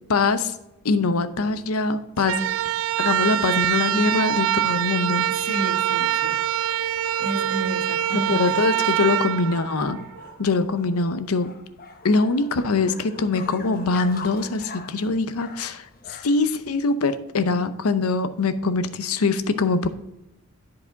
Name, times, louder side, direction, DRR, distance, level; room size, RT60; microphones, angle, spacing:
voice 1, 0.1-0.5 0.8-2.4 3.0-5.5 8.1-10.0 10.4-11.5 12.0-19.9, left 3 dB, 85° left, 12 dB, 0.6 m, -23 dB
sound 1, 2.2-10.3, right 12 dB, 65° right, 0.4 m, -24 dB
voice 2, 5.3-6.4 7.2-8.6, right 2 dB, 90° right, 5 dB, 1.3 m, -31 dB
sound 2, 7.1-16.6, left 4 dB, 40° left, 0.8 m, -43 dB
10.5 x 4.8 x 3.9 m, 0.91 s
head